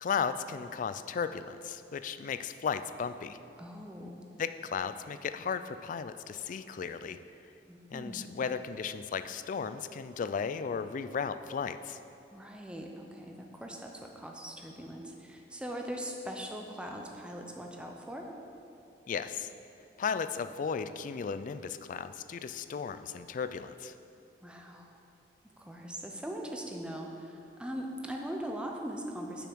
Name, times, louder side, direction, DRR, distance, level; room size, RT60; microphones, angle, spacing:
voice 1, 0.0-3.4 4.4-7.2 7.9-12.0 19.1-19.5 20.0-23.9, left 6 dB, 50° left, 12 dB, 0.3 m, -35 dB
voice 2, 3.6-4.2 7.7-8.2 12.3-18.3 24.4-25.0 25.6-29.5, equal, 5° right, 1 dB, 0.7 m, -41 dB
6.8 x 6.0 x 6.2 m, 2.7 s
head